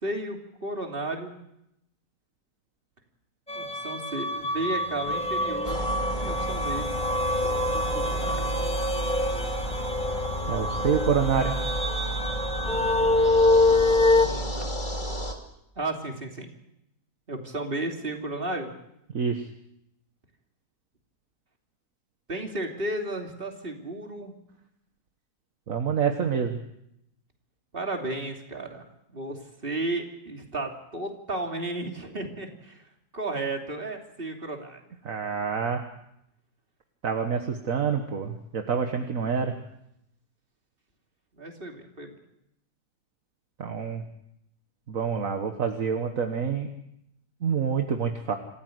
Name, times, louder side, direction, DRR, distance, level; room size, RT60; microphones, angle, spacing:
voice 1, 0.0-1.4 3.5-5.9 6.2-6.9 7.4-8.5 14.2-14.7 15.1-15.3 15.8-16.5 17.3-18.7 22.3-24.3 27.7-28.8 29.1-32.8 33.1-34.8 41.4-42.2, right 2 dB, 35° right, 2 dB, 3.1 m, -33 dB
sound 1, 3.5-14.3, left 2 dB, 5° left, 1.8 m, -25 dB
sound 2, 5.6-15.3, equal, 30° left, 2.9 m, -32 dB
sound 3, 8.4-14.2, left 2 dB, 60° left, 3.2 m, -49 dB
voice 2, 10.5-11.6 19.1-19.4 25.7-26.6 35.0-35.9 37.0-39.5 43.6-44.1 44.9-46.7 47.4-48.3, right 6 dB, 60° right, 5 dB, 1.7 m, -27 dB
27.0 x 15.0 x 7.9 m, 0.79 s
omnidirectional pair, 1.7 m